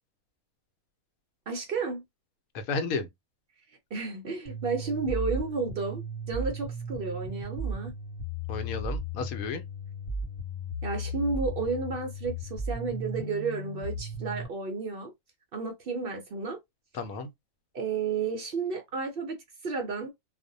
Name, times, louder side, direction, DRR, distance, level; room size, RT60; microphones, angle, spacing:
voice 1, 1.5-2.0 3.9-7.9 10.8-15.1 15.5-16.6 17.7-19.4 19.6-20.1, right 4 dB, 65° right, 0.6 m, -32 dB
voice 2, 2.5-3.1 8.5-9.6 16.9-17.3, left 4 dB, 80° left, 1.0 m, -32 dB
sound 1, 4.5-14.5, right 1 dB, 35° left, 1.1 m, -35 dB
2.5 x 2.1 x 2.5 m
omnidirectional pair, 1.5 m